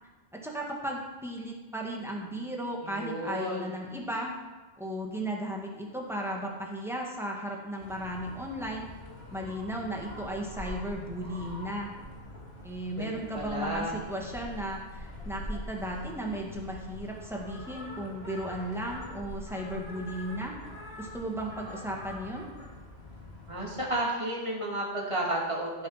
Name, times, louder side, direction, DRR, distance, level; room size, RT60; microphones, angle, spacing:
voice 1, 0.4-4.3 4.8-8.8 9.3-11.9 12.6-20.5 21.0-22.5, right 1 dB, ahead, -2 dB, 1.8 m, -35 dB
voice 2, 2.8-3.7 12.9-14.0 23.5-25.9, right 1 dB, 25° right, -4 dB, 2.6 m, -32 dB
sound 1, 7.8-23.9, left 1 dB, 60° left, 3.3 m, -44 dB
14.5 x 6.5 x 5.8 m, 1.3 s
omnidirectional pair, 1.2 m